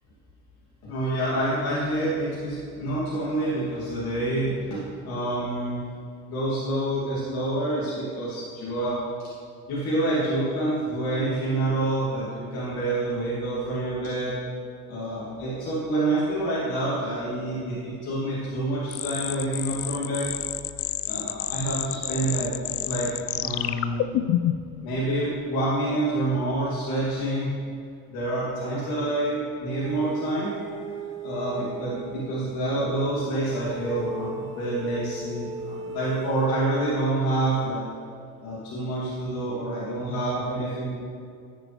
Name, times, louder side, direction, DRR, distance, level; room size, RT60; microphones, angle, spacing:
voice 1, 0.8-5.8 6.3-9.0 9.7-14.3 14.9-20.3 21.1-22.5 22.8-23.1 23.4-24.0 24.8-27.5 28.1-30.5 31.2-37.8 38.4-40.9, right 1 dB, 55° left, -8 dB, 3.1 m, -27 dB
sound 1, 18.9-24.7, left 13 dB, 35° left, 0.4 m, -29 dB
sound 2, 29.8-32.4 33.6-36.9, right 2 dB, 35° right, 1.8 m, -37 dB
13.5 x 9.6 x 3.5 m, 2.3 s
figure-of-eight pair, 55°, 44 cm